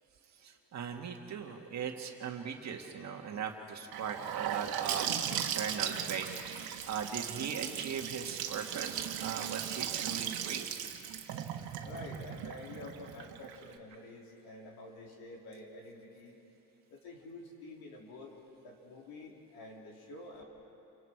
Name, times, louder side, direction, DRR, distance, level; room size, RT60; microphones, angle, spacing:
voice 1, 0.4-6.3 6.9-10.7, right 7 dB, 45° right, 3 dB, 1.8 m, -39 dB
Gurgling / Sink (filling or washing) / Bathtub (filling or washing), 3.9-13.7, right 9 dB, 65° right, 1.6 m, -37 dB
voice 2, 11.8-16.3 16.9-18.3 18.6-20.4, left 2 dB, 65° left, -1 dB, 4.0 m, -48 dB
28.5 x 24.5 x 4.7 m, 2.9 s
cardioid pair, 135°, 39 cm